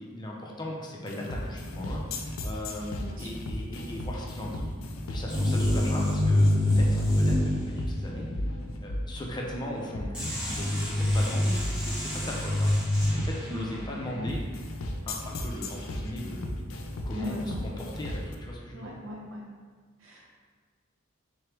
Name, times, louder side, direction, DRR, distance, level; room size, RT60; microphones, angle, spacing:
voice 1, 0.0-4.7 5.1-8.3 8.8-14.4 15.0-16.6 17.0-19.0, left 1 dB, 20° left, -2 dB, 0.5 m, -38 dB
sound 1, 1.1-18.3, left 1 dB, 80° left, 0.4 m, -36 dB
voice 2, 3.0-3.3 11.0-11.2 13.5-14.0 17.1-17.6 18.7-19.4 20.0-20.4, equal, 70° right, -2 dB, 0.8 m, -39 dB
sound 2, 5.3-8.1 10.1-13.6, left 1 dB, 5° right, 1.2 m, -25 dB
3.7 x 3.1 x 3.2 m, 1.5 s
head